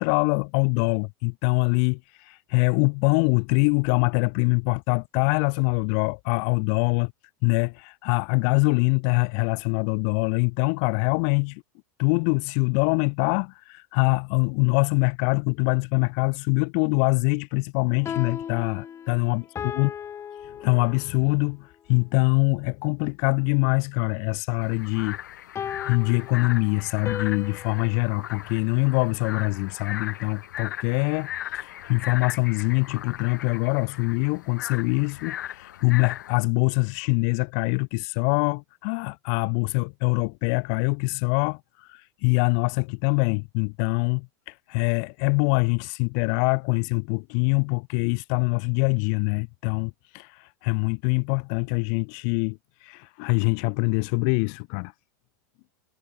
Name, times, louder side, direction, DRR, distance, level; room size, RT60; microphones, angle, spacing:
voice 1, 0.0-7.1 7.4-11.6 12.0-19.9 20.6-25.2 25.6-54.9, left 40 dB or more, 60° left, 1.5 m, -24 dB
sound 1, 17.9-21.3 25.6-28.1, left 8 dB, 30° left, 4.5 m, -37 dB
sound 2, 24.6-36.4, left 12 dB, 90° left, 1.1 m, -38 dB
supercardioid pair, 120°, 10 cm